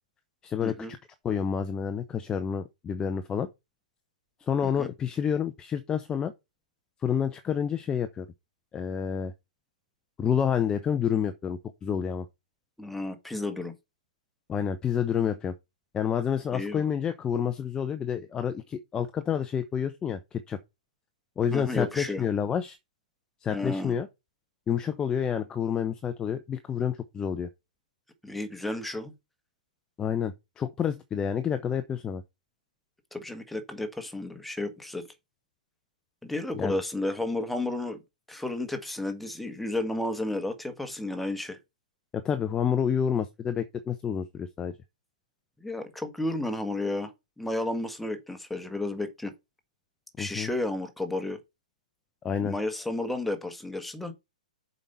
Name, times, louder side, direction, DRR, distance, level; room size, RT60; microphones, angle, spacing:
voice 1, 0.4-1.0 1.2-3.5 4.4-6.3 7.0-8.3 8.7-9.3 10.2-12.3 14.5-15.5 15.9-20.6 21.4-22.8 23.4-24.1 24.7-27.5 30.0-32.2 36.5-36.8 42.1-44.7 50.2-50.5 52.2-52.6, left 8 dB, 20° left, 0.8 m, -29 dB
voice 2, 12.8-13.7 16.5-16.9 21.5-22.2 23.5-23.9 28.2-29.1 33.1-35.1 36.2-38.0 38.3-41.6 45.6-47.1 47.4-49.3 50.2-51.4 52.4-54.1, left 2 dB, 5° left, 1.6 m, -32 dB
7.2 x 5.3 x 5.6 m
hypercardioid pair, 120°, 4 cm